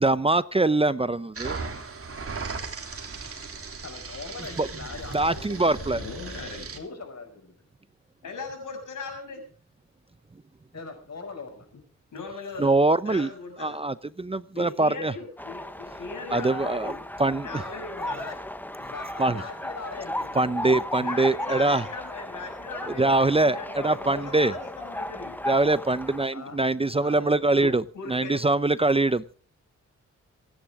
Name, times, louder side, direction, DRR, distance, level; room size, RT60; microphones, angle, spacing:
voice 1, 0.0-1.6 4.6-4.7 5.1-6.0 12.6-13.3 13.6-15.1 16.3-16.9 17.2-17.5 19.2-19.4 20.4-21.8 23.0-23.6 23.8-24.5 25.5-27.8 28.1-29.3, right 2 dB, 20° right, 16 dB, 0.6 m, -23 dB
sound 1, 1.4-6.8, right 4 dB, 45° right, 3.0 m, -37 dB
voice 2, 3.8-6.4 6.7-7.6 10.7-11.7 18.0-18.4 18.8-20.6 26.3-26.6 27.0-27.7, left 4 dB, 60° left, 5 dB, 6.1 m, -41 dB
voice 3, 5.9-6.8 8.2-9.4 12.1-12.7 13.0-13.8 14.5-17.0 17.4-18.3 21.0-25.4 27.6-28.3, left 4 dB, 90° left, 4 dB, 6.8 m, -38 dB
sound 2, 15.4-26.2, left 1 dB, 5° left, 1.1 m, -35 dB
27.0 x 10.0 x 3.6 m, 0.41 s
cardioid pair, 90°, 30 cm